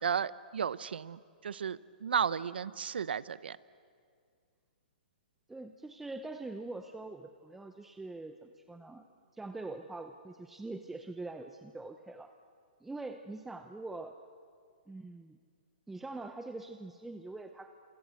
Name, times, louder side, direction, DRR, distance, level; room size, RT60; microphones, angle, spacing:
voice 1, 0.0-3.6, right 7 dB, 85° right, 18 dB, 0.8 m, -34 dB
voice 2, 5.5-9.1 9.3-12.3 12.8-14.1 14.9-15.4 15.9-17.7, right 2 dB, 5° right, 6 dB, 0.7 m, -43 dB
29.0 x 27.0 x 7.7 m, 2.1 s
hypercardioid pair, 160°, 5 cm